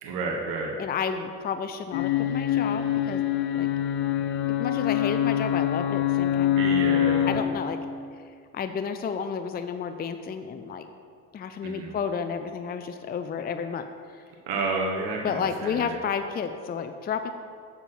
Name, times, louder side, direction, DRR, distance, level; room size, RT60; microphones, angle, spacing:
voice 1, 0.0-0.7 6.6-7.3 11.6-11.9 14.5-15.9, right 3 dB, 70° right, 0 dB, 1.4 m, -30 dB
voice 2, 0.8-3.2 3.5-3.7 4.6-6.6 7.2-7.8 8.5-10.9 11.3-13.8 14.1-14.2 15.2-17.3, left 6 dB, 30° left, 8 dB, 0.5 m, -31 dB
sound 1, 1.9-7.4, left 11 dB, 80° left, 0.6 m, -25 dB
7.1 x 6.8 x 5.9 m, 2.2 s
supercardioid pair, 85°, 34 cm